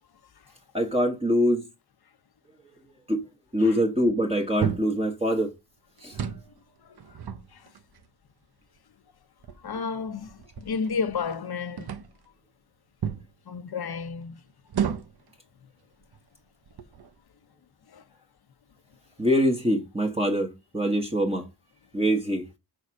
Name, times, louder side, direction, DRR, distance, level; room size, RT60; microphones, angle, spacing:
voice 1, 0.7-1.6 3.1-3.2 3.5-5.5 6.0-6.2 19.2-21.5 21.9-22.4, equal, 15° right, 1.4 m, -24 dB
sound 1, 4.6-5.0 6.0-6.5 7.0-8.0 8.8-8.9 9.4-11.4 11.8-12.3 13.0-13.3 14.7-15.3 16.0-16.2 16.7-17.2, right 8 dB, 65° right, 0.9 m, -33 dB
voice 2, 9.6-11.9 13.5-14.4 17.9-18.0, left 5 dB, 65° left, 1.0 m, -32 dB
6.5 x 4.8 x 6.4 m
wide cardioid pair, 170°, 40 cm